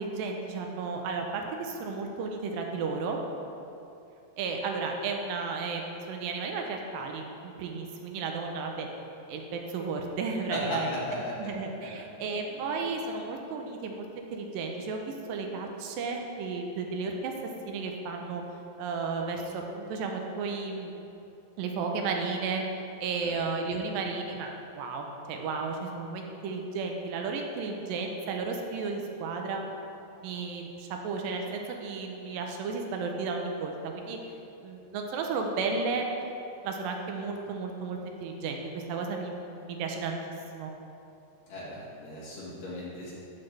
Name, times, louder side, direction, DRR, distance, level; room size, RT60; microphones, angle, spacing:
voice 1, 0.0-3.2 4.4-8.9 9.3-11.0 11.4-17.3 17.7-18.4 18.8-20.9 21.6-22.6 23.0-24.5 24.8-29.6 30.2-34.2 34.6-36.1 36.6-40.2 40.5-40.7, right 4 dB, 85° right, 2 dB, 2.3 m, -33 dB
voice 2, 10.5-11.3 12.5-12.6 23.2-23.4 41.5-43.1, left 1 dB, 55° left, -8 dB, 2.3 m, -36 dB
12.0 x 4.3 x 3.3 m, 2.8 s
omnidirectional pair, 4.0 m